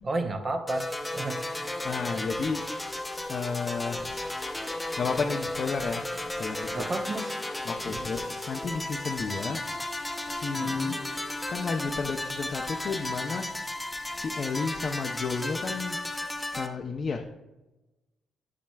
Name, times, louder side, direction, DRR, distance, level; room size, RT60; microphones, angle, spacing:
voice 1, 0.0-1.7 6.7-7.4 7.9-8.1 10.6-11.0, right 2 dB, 35° right, 6 dB, 0.7 m, -33 dB
sound 1, 0.7-16.7, left 1 dB, 10° left, 0.7 m, -34 dB
voice 2, 1.8-2.7 3.3-4.2 5.0-6.9 7.6-9.8 10.3-11.1 11.5-13.5 14.1-16.1 16.5-17.3, left 5 dB, 45° left, 2 dB, 0.5 m, -32 dB
8.5 x 7.2 x 2.3 m, 1.0 s
cardioid pair, 90°, 0 cm